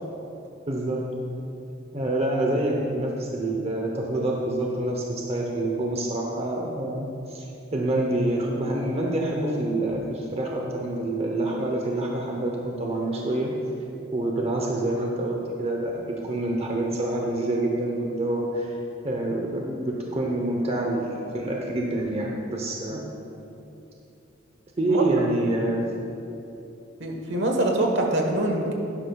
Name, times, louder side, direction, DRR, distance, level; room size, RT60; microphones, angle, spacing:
voice 1, 0.7-1.0 1.9-13.5 14.1-18.8 19.0-23.0 24.8-25.8, right 1 dB, 30° right, -1 dB, 0.8 m, -27 dB
voice 2, 27.0-28.7, right 1 dB, 65° right, 2 dB, 1.2 m, -24 dB
11.5 x 11.0 x 2.3 m, 2.8 s
head